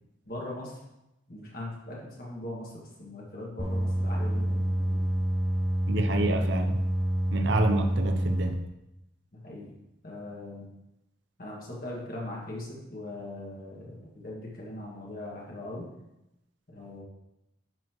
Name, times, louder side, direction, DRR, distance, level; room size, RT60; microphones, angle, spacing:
voice 1, 0.3-0.8 1.3-5.1 9.3-9.8 10.0-10.7 11.4-15.9 16.7-17.0, left 1 dB, 50° left, -4 dB, 1.9 m, -40 dB
sound 1, 3.6-8.5, equal, 5° right, 0.8 m, -27 dB
voice 2, 5.9-6.8 7.3-8.6, right 2 dB, 70° right, 6 dB, 0.7 m, -28 dB
11.0 x 4.3 x 3.1 m, 0.90 s
head